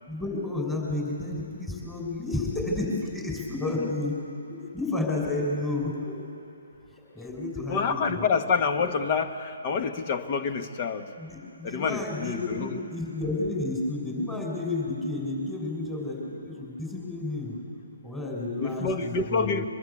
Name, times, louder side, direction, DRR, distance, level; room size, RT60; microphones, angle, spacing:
voice 1, 0.1-4.2 4.5-6.2 6.9-8.3 11.2-17.6 18.0-19.7, left 2 dB, 10° left, -2 dB, 6.0 m, -31 dB
voice 2, 7.7-11.1 11.6-12.8 18.6-19.6, left 5 dB, 35° left, 7 dB, 1.5 m, -27 dB
24.5 x 21.5 x 8.5 m, 2.8 s
figure-of-eight pair, 135°, 0 cm